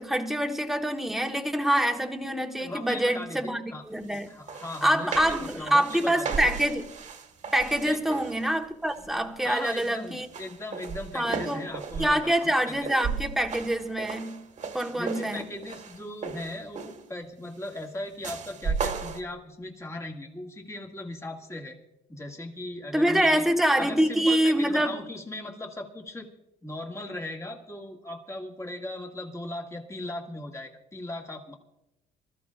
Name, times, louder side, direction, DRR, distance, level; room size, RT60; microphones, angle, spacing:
voice 1, 0.0-4.3 4.8-6.8 7.5-10.3 11.1-11.6 12.0-14.5 14.7-15.4 22.9-25.0, right 1 dB, ahead, 1.3 m, -25 dB
voice 2, 2.6-3.8 4.3-6.5 7.9-8.2 9.0-9.1 9.4-12.9 14.9-21.8 22.1-23.4 23.8-26.3 26.6-31.5, left 1 dB, 15° left, 2.0 m, -38 dB
sound 1, 4.1-4.2 4.5-8.5 9.0-9.3 9.7-17.1 18.2-19.2, right 5 dB, 45° right, 1.6 m, -36 dB
25.5 x 14.0 x 2.5 m
cardioid pair, 110°, 17 cm